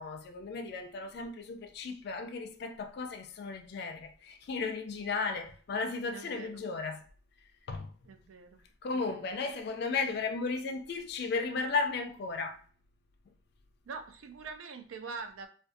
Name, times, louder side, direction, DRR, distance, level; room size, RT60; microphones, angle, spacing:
voice 1, 0.0-7.0 7.7-7.9 8.8-12.6, left 4 dB, 50° left, 0.3 m, -35 dB
voice 2, 6.1-6.5 8.1-8.6 8.9-9.3 13.9-15.5, right 4 dB, 85° right, 0.4 m, -44 dB
2.4 x 2.3 x 2.5 m
head